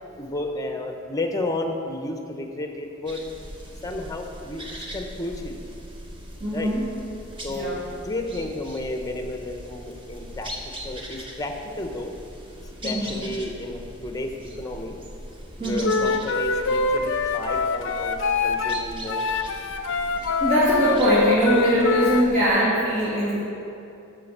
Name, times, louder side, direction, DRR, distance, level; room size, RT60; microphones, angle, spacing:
voice 1, 0.1-3.2 3.8-4.6 4.9-5.7 6.5-6.7 7.4-10.5 10.8-12.1 12.8-14.3 14.6-15.0 15.6-19.2, left 2 dB, 15° left, 4 dB, 0.9 m, -32 dB
sound 1, 3.1-22.5, equal, 25° right, 1.2 m, -40 dB
voice 2, 6.4-6.8 7.5-7.8 12.8-13.2 15.6-15.9 20.4-23.4, right 1 dB, 45° right, -10 dB, 2.5 m, -22 dB
Wind instrument woodwind instrument, 15.8-18.8 19.1-22.3, left 4 dB, 65° left, 0.5 m, -24 dB
13.0 x 5.2 x 6.7 m, 2.7 s
head